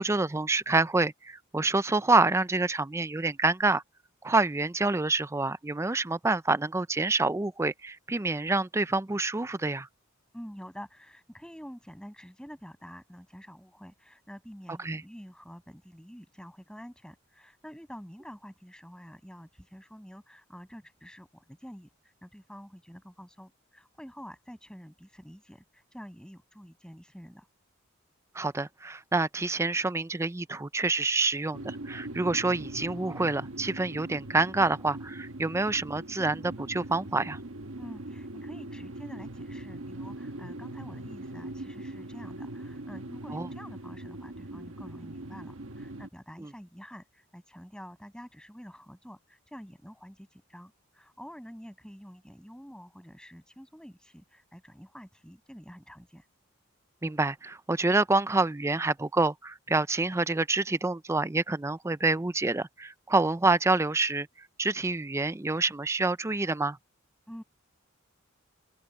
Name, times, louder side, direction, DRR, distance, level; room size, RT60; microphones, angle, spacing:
voice 1, 0.0-3.8 4.2-9.9 14.8-15.0 28.3-37.4 43.3-43.5 46.4-46.5 57.0-64.3 64.6-66.8, right 3 dB, 15° right, 0.5 m, -27 dB
voice 2, 10.3-27.5 37.8-56.3 67.3-67.4, equal, 5° left, 7.9 m, -48 dB
sound 1, 31.5-46.1, right 1 dB, 80° right, 1.4 m, -41 dB
open air
head